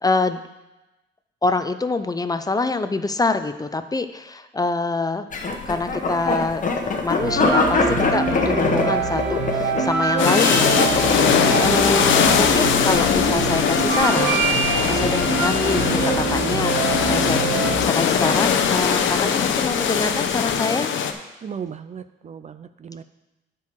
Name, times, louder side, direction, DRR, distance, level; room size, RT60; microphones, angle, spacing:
voice 1, 0.0-0.4 1.4-5.3 5.7-6.6 7.0-14.5 14.8-17.4 17.8-20.9, left 3 dB, 20° left, 10 dB, 0.5 m, -25 dB
sound 1, 5.3-20.6, left 3 dB, 40° left, 1.2 m, -27 dB
sound 2, 7.2-17.8, right 5 dB, 65° right, 1.5 m, -25 dB
sound 3, 10.2-21.1, left 7 dB, 75° left, 0.8 m, -21 dB
voice 2, 17.1-17.5 17.7-17.9 21.4-23.0, right 6 dB, 35° right, 12 dB, 0.4 m, -34 dB
9.4 x 4.6 x 6.1 m, 0.99 s
cardioid pair, 90°, 20 cm